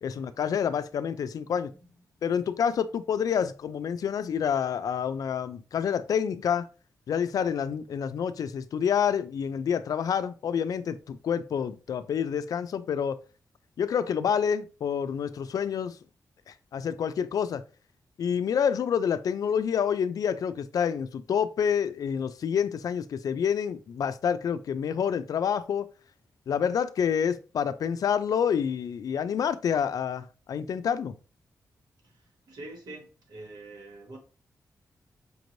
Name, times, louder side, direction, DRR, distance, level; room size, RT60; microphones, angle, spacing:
voice 1, 0.0-1.7 2.2-6.7 7.1-13.2 13.8-16.0 16.5-17.6 18.2-25.9 26.5-31.2, left 7 dB, 70° left, 0.3 m, -28 dB
voice 2, 32.0-34.2, right 2 dB, 85° right, 1.4 m, -45 dB
5.1 x 3.1 x 2.6 m
wide cardioid pair, 130°, 7 cm